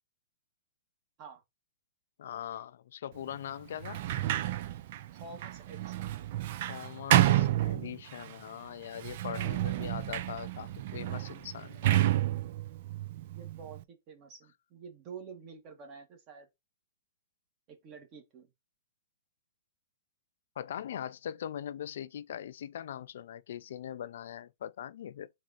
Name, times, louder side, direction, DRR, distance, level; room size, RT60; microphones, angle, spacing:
voice 1, 2.2-4.0 6.7-12.2 20.6-25.3, left 10 dB, 70° left, 0.4 m, -41 dB
Sliding door, 3.8-8.3 9.0-13.8, right 14 dB, 55° right, 0.4 m, -30 dB
voice 2, 5.1-6.0 13.4-16.5 17.7-18.5, right 5 dB, 35° right, 1.6 m, -49 dB
4.0 x 2.7 x 4.8 m
hypercardioid pair, 145°, 0 cm